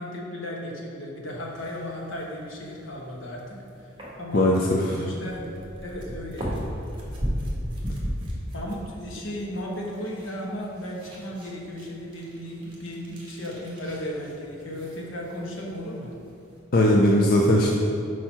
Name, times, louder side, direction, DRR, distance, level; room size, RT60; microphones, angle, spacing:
voice 1, 0.0-3.9 4.2-4.6 4.9-6.7 8.5-16.1, equal, 75° left, -1 dB, 1.1 m, -35 dB
sound 1, 1.3-16.6, equal, 25° right, 1.2 m, -37 dB
voice 2, 4.3-5.0 16.7-17.7, left 1 dB, 50° left, -1 dB, 0.4 m, -19 dB
4.7 x 4.4 x 5.7 m, 2.6 s
head